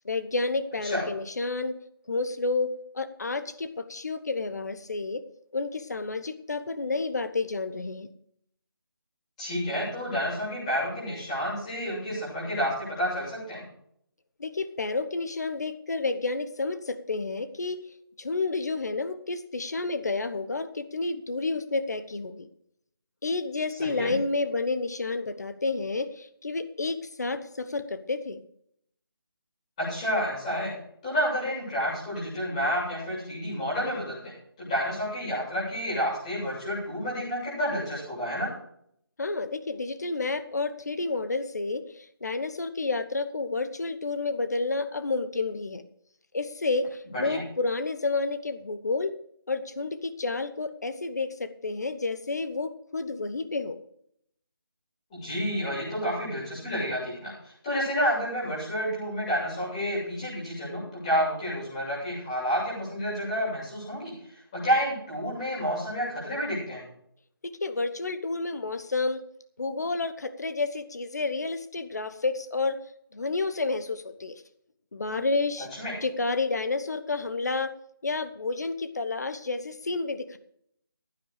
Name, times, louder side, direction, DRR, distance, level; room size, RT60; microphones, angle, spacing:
voice 1, 0.0-1.7 2.1-2.7 2.9-5.2 5.5-8.1 14.4-17.8 18.2-22.5 23.2-28.4 39.2-45.8 46.3-49.1 49.5-53.8 67.4-69.2 69.6-72.8 73.1-74.4 74.9-75.7 76.0-77.8 78.0-80.4, left 3 dB, 45° left, 11 dB, 1.1 m, -30 dB
voice 2, 9.4-13.6 23.8-24.1 29.8-30.8 31.0-34.3 34.6-38.5 47.1-47.4 55.1-66.8 75.8-75.9, equal, 15° left, -8 dB, 7.4 m, -30 dB
16.0 x 9.3 x 5.0 m, 0.69 s
figure-of-eight pair, 175°, 13 cm